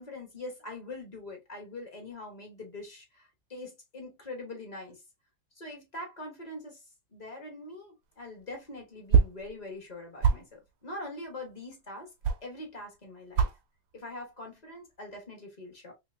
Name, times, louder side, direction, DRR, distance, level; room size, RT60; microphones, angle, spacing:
voice 1, 0.0-5.0 5.6-6.8 7.1-12.1 12.4-13.5 13.9-15.9, left 2 dB, 30° left, 1.2 m, -43 dB
sound 1, 8.1-13.0 13.3-13.6 13.9-14.5 14.8-15.3, right 6 dB, 75° right, 1.1 m, -27 dB
3.3 x 3.1 x 2.5 m
omnidirectional pair, 1.7 m